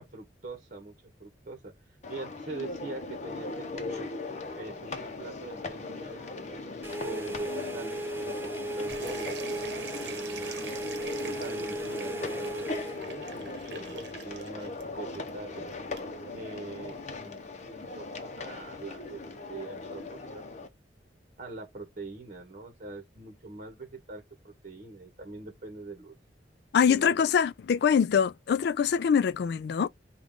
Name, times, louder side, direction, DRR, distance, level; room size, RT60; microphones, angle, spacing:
voice 1, 0.0-1.7 2.1-4.1 4.5-10.6 11.2-15.7 16.3-17.4 17.6-19.2 19.5-20.5 21.4-26.1 26.9-27.2, right 3 dB, 45° right, 1.0 m, -43 dB
sound 1, 2.0-20.7, left 3 dB, 45° left, 0.7 m, -39 dB
sound 2, 6.8-13.0, right 1 dB, 15° right, 0.4 m, -36 dB
sound 3, 8.9-20.2, right 6 dB, 75° right, 0.9 m, -47 dB
voice 2, 26.7-29.9, left 7 dB, 65° left, 0.3 m, -24 dB
5.0 x 2.3 x 3.6 m
head